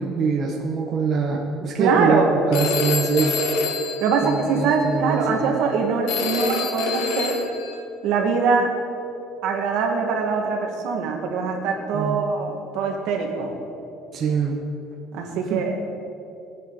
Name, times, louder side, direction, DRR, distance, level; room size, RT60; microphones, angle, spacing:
voice 1, 0.0-3.4 4.2-5.5 11.9-12.2 14.1-14.6 15.5-15.6, right 5 dB, 35° right, -1 dB, 0.9 m, -24 dB
voice 2, 1.8-2.3 4.0-7.4 8.0-8.7 9.4-13.6 15.1-15.7, right 5 dB, 65° right, 1 dB, 1.9 m, -23 dB
Telephone, 2.5-4.9 6.1-7.8, left 4 dB, 85° left, 1.7 m, -26 dB
19.0 x 9.3 x 4.0 m, 2.7 s
cardioid pair, 175°, 0 cm